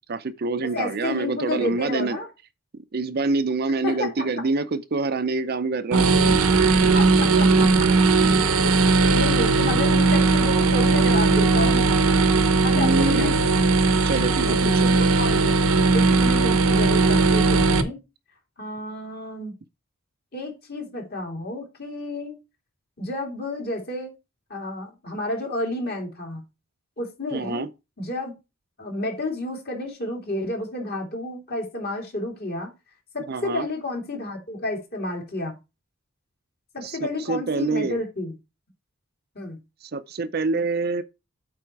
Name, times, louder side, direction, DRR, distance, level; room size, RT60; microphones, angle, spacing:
voice 1, 0.1-2.2 2.7-6.1 9.0-9.2 9.6-9.8 12.7-13.4 14.0-14.9 27.3-27.7 33.3-33.7 36.8-38.0 39.8-41.0, right 3 dB, 45° right, 0.5 m, -26 dB
voice 2, 0.7-2.3 3.8-4.4 6.9-8.1 8.6-8.9 9.1-12.0 12.6-13.8 14.4-15.6 15.9-18.0 18.6-19.5 20.3-22.4 23.0-24.1 24.5-26.4 27.0-27.6 28.0-28.3 28.8-32.7 33.1-35.5 36.7-38.3 39.3-39.6, left 2 dB, 45° left, 2.8 m, -31 dB
sound 1, 5.9-17.8, right 3 dB, 85° right, 0.9 m, -18 dB
8.6 x 4.2 x 4.6 m
head